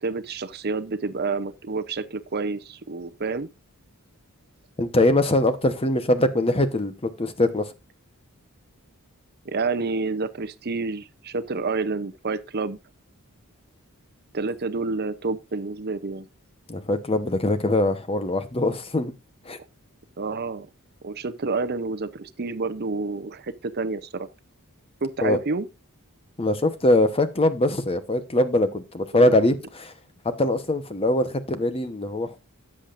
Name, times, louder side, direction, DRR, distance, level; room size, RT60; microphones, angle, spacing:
voice 1, 0.0-3.5 9.5-12.8 14.3-16.3 20.2-20.7 21.0-24.3 25.0-25.7 29.1-29.3, right 3 dB, 45° right, 0.7 m, -29 dB
voice 2, 4.8-7.7 16.7-19.1 19.4-19.6 25.2-25.4 26.4-29.9 30.2-32.4, left 1 dB, 25° left, 1.0 m, -22 dB
13.5 x 8.7 x 2.5 m
head